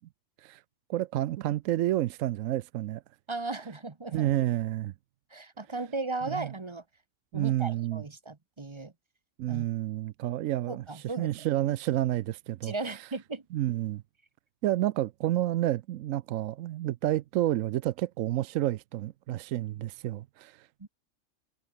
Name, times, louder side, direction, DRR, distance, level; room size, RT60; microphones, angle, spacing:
voice 1, 0.9-3.0 4.1-4.9 6.3-6.5 7.3-8.0 9.4-13.0 13.5-14.0 14.6-20.9, right 14 dB, 85° right, 1.0 m, -30 dB
voice 2, 3.3-4.3 5.3-6.8 7.3-8.9 9.5-9.7 10.7-11.3 12.6-13.4 20.8-20.9, right 3 dB, 25° right, 1.0 m, -36 dB
omnidirectional pair, 1.3 m